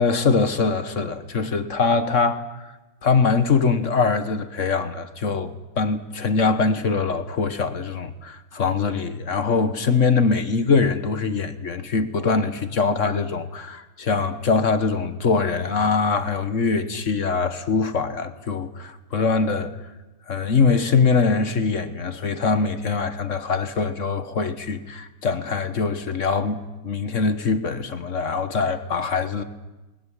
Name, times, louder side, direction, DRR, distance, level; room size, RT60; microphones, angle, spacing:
voice 1, 0.0-2.7 3.0-19.7 20.3-29.4, left 4 dB, 40° left, 1.3 m, -23 dB
20.0 x 20.0 x 10.0 m
omnidirectional pair, 2.4 m